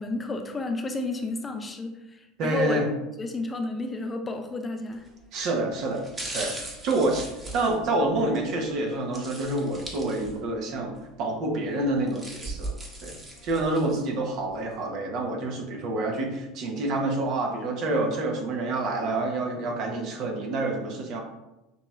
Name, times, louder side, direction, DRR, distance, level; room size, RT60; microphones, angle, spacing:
voice 1, 0.0-5.1, left 2 dB, 20° left, 5 dB, 0.5 m, -31 dB
voice 2, 2.4-2.9 5.3-6.1 6.3-6.6 6.8-12.7 13.0-13.2 13.4-21.2, right 2 dB, 55° right, 2 dB, 1.0 m, -27 dB
sound 1, 4.9-5.2 5.9-8.4 9.1-10.6 11.0-11.1 11.8-14.0 14.5-14.6, right 2 dB, 25° right, 1.3 m, -38 dB
6.6 x 2.9 x 2.4 m, 0.98 s
hypercardioid pair, 80°, 0 cm